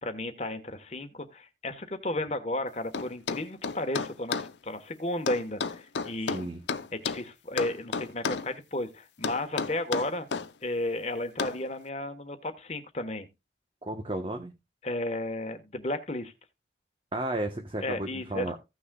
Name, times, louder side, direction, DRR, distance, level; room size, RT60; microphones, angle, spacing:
voice 1, 0.0-6.5 6.9-10.3 10.6-13.3 14.8-16.3 17.8-18.5, left 1 dB, 35° left, 1.2 m, -33 dB
sound 1, 2.9-4.5 5.3-7.2 7.6-8.5 9.2-10.5 11.4-11.6, left 5 dB, 80° left, 0.6 m, -32 dB
voice 2, 6.3-6.6 13.8-14.5 17.1-18.6, right 1 dB, 30° right, 1.0 m, -33 dB
16.0 x 6.2 x 2.3 m
head